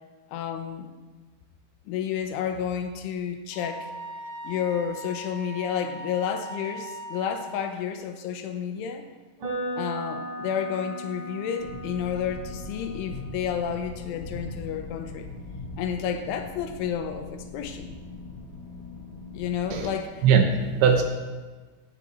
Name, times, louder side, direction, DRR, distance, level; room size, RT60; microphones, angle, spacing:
voice 1, 0.3-0.9 1.9-3.9 4.4-9.1 9.8-15.3 15.8-18.0 19.3-20.3, left 8 dB, 80° left, 6 dB, 3.2 m, -31 dB
Wind instrument woodwind instrument, 3.5-7.7, right 1 dB, 15° right, 4.9 m, -39 dB
sound 1, 9.4-17.3, right 1 dB, 45° right, 4.4 m, -39 dB
sound 2, 11.6-19.9, left 2 dB, 45° left, 2.2 m, -40 dB
voice 2, 20.2-21.0, right 6 dB, 75° right, 4 dB, 3.1 m, -20 dB
16.0 x 9.9 x 4.3 m, 1.3 s
omnidirectional pair, 5.8 m